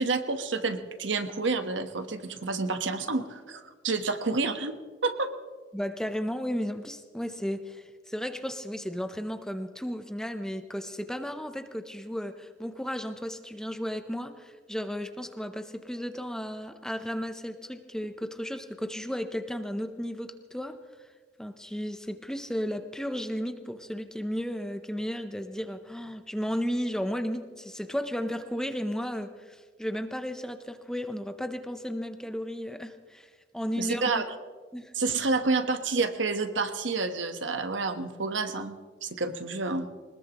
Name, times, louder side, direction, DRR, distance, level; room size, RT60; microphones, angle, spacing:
voice 1, 0.0-5.3 33.8-34.3 34.9-39.9, right 3 dB, 85° right, 8 dB, 1.2 m, -29 dB
voice 2, 5.7-20.8 21.4-34.2 34.7-34.9, equal, 5° left, 8 dB, 0.7 m, -34 dB
21.5 x 20.0 x 3.0 m, 1.5 s
head